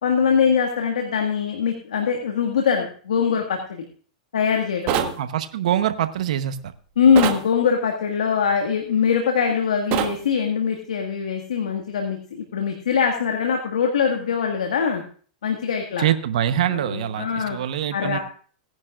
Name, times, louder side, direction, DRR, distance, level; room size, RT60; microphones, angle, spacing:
voice 1, 0.0-3.8 4.3-5.1 6.9-15.0 15.4-16.1 16.6-17.6 17.9-18.2, left 6 dB, 85° left, 2 dB, 1.8 m, -22 dB
sound 1, 4.9-5.2 7.2-7.4 9.9-10.2, right 10 dB, 45° right, 1.3 m, -23 dB
voice 2, 5.2-6.6 16.0-18.2, right 11 dB, 70° right, 10 dB, 1.0 m, -24 dB
17.5 x 10.5 x 2.5 m, 0.44 s
hypercardioid pair, 125°, 4 cm